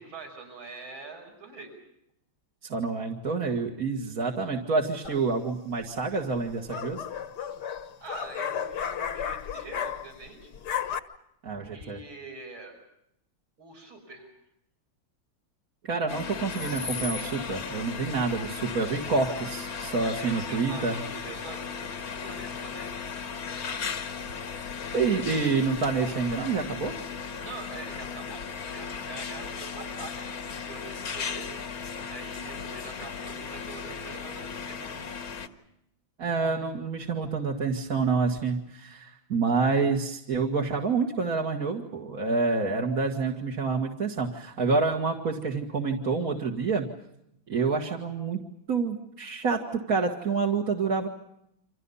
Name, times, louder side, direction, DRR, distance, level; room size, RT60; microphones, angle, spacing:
voice 1, 0.0-1.7 8.0-10.5 11.7-12.7 13.6-14.3 20.0-22.9 27.4-30.3 30.7-31.5 32.1-35.0, right 3 dB, 75° right, 3 dB, 6.7 m, -44 dB
voice 2, 2.6-7.0 11.4-12.0 15.8-21.0 24.9-27.0 36.2-46.9 47.5-48.4 48.7-51.1, right 4 dB, 45° right, 0 dB, 2.2 m, -28 dB
sound 1, 5.0-5.5 6.4-10.3 10.5-11.0, left 8 dB, 60° left, 1.7 m, -33 dB
sound 2, 16.1-35.5, left 6 dB, 80° left, 2.4 m, -36 dB
29.5 x 26.5 x 5.6 m, 0.78 s
omnidirectional pair, 2.2 m